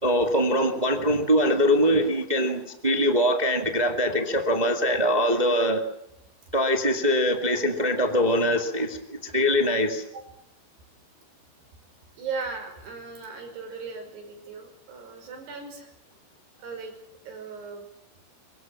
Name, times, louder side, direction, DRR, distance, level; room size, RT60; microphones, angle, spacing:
voice 1, 0.0-5.8 6.5-10.0, equal, 35° right, 4 dB, 0.6 m, -23 dB
voice 2, 12.2-15.9 16.6-16.9 17.3-17.8, right 4 dB, 65° right, 4 dB, 7.4 m, -37 dB
25.0 x 23.0 x 7.6 m, 0.77 s
omnidirectional pair, 5.1 m